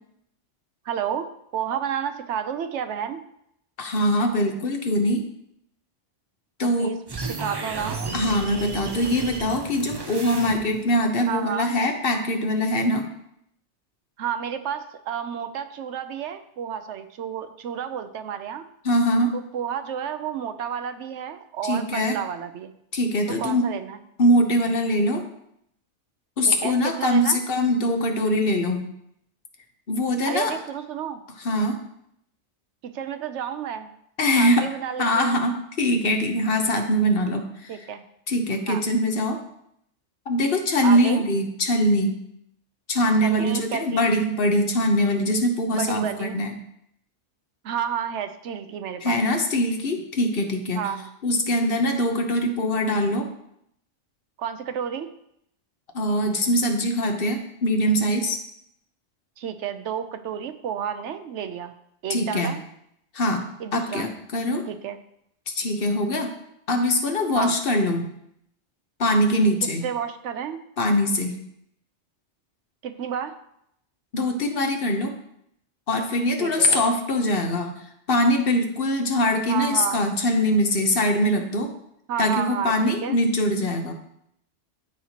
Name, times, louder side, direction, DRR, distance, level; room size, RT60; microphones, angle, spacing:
voice 1, 0.9-3.2 6.8-7.0 7.3-8.0 11.3-11.8 14.2-18.6 19.3-22.7 23.4-24.0 26.4-27.4 30.2-31.2 32.8-33.9 34.4-35.4 37.7-38.0 38.7-38.8 40.8-41.2 43.2-44.1 45.7-46.4 47.6-49.2 50.7-51.1 54.4-55.1 59.4-61.7 62.0-62.6 63.6-64.0 64.7-65.0 67.3-67.6 69.6-70.6 72.8-73.3 76.4-76.9 79.5-80.0 82.1-83.2, right 8 dB, 85° right, 9 dB, 0.9 m, -31 dB
voice 2, 3.8-5.2 6.6-6.9 8.1-13.1 18.8-19.3 21.6-22.2 22.9-23.6 24.2-25.2 26.4-28.9 29.9-30.5 31.4-31.8 34.2-34.6 35.0-37.7 38.3-39.4 40.3-42.1 42.9-46.5 49.0-50.8 51.2-53.3 55.9-58.4 62.1-62.5 63.1-63.4 63.7-64.6 65.5-66.3 66.7-68.1 69.0-69.8 70.8-71.4 74.1-75.1 75.9-77.7 78.1-81.7 82.2-83.9, left 1 dB, 55° left, 4 dB, 1.1 m, -22 dB
sound 1, 7.1-10.9, right 3 dB, 30° right, 0.5 m, -33 dB
13.0 x 4.4 x 2.9 m, 0.74 s
omnidirectional pair, 1.2 m